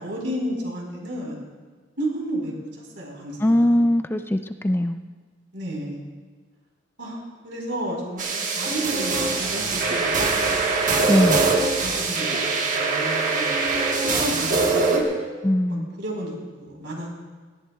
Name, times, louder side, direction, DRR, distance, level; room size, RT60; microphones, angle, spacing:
voice 1, 0.0-1.4 2.0-2.5 3.0-3.9 5.5-6.0 7.0-10.9 11.8-12.2 12.7-13.5 14.1-15.0 15.7-17.1, right 1 dB, 80° right, -2 dB, 4.2 m, -32 dB
voice 2, 3.4-5.0 11.1-11.4 15.4-15.9, left 1 dB, 10° left, 8 dB, 0.3 m, -20 dB
sound 1, 8.2-15.0, right 3 dB, 45° right, 1.4 m, -23 dB
18.0 x 14.0 x 2.3 m, 1.5 s
head